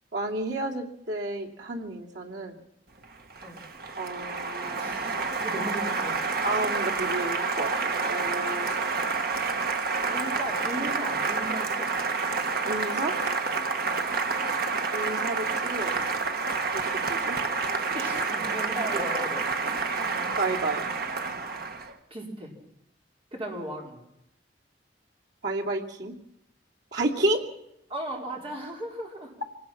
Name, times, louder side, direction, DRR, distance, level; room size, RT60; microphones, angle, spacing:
voice 1, 0.1-2.6 4.0-5.2 6.4-8.7 9.8-9.9 12.7-13.2 14.9-15.9 16.8-17.4 20.4-20.8 25.4-26.1 26.9-27.4, right 2 dB, 85° right, -1 dB, 2.8 m, -31 dB
Applause, 3.0-21.9, right 4 dB, 60° right, 1.5 m, -29 dB
voice 2, 4.7-6.2 8.6-9.0 10.1-12.0 13.8-14.0 17.9-19.4 22.1-22.5 23.3-24.0 27.9-29.3, right 1 dB, 35° right, -1 dB, 4.6 m, -36 dB
25.5 x 19.0 x 5.9 m, 0.78 s
head